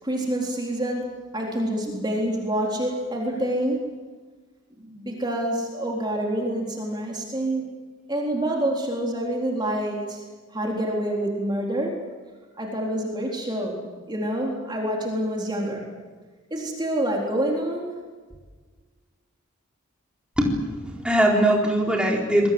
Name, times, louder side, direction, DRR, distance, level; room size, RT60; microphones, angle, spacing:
voice 1, 0.0-3.9 4.8-7.7 8.1-10.2 10.5-12.0 12.6-15.9 16.5-17.9, right 1 dB, 20° right, -1 dB, 3.9 m, -27 dB
voice 2, 20.4-22.5, right 1 dB, 5° right, -2 dB, 4.2 m, -21 dB
26.5 x 22.0 x 7.9 m, 1.4 s
head